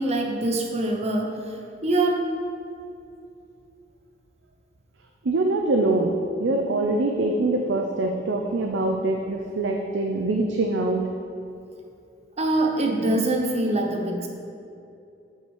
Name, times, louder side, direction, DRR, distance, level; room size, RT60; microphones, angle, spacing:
voice 1, 0.0-2.2 12.4-14.3, right 2 dB, 35° right, 1 dB, 0.9 m, -24 dB
voice 2, 5.2-11.1, right 2 dB, 85° right, 2 dB, 0.6 m, -24 dB
8.1 x 5.6 x 4.7 m, 2.6 s
head